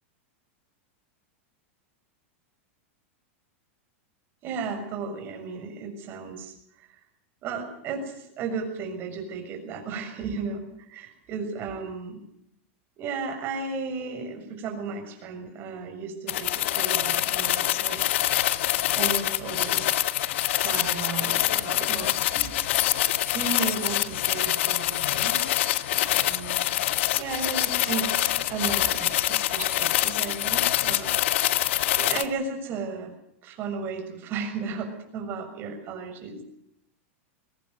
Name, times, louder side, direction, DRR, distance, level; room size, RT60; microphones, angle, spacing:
voice 1, 4.4-7.0 7.4-12.2 13.0-18.0 18.9-19.9 20.2-20.3 20.5-22.5 23.3-25.7 25.9-31.4 32.0-33.1 33.4-36.4, right 4 dB, 30° right, 5 dB, 6.6 m, -34 dB
sound 1, 16.3-32.2, left 14 dB, 65° left, 1.4 m, -25 dB
23.5 x 19.0 x 8.1 m, 0.75 s
supercardioid pair, 160°, 7 cm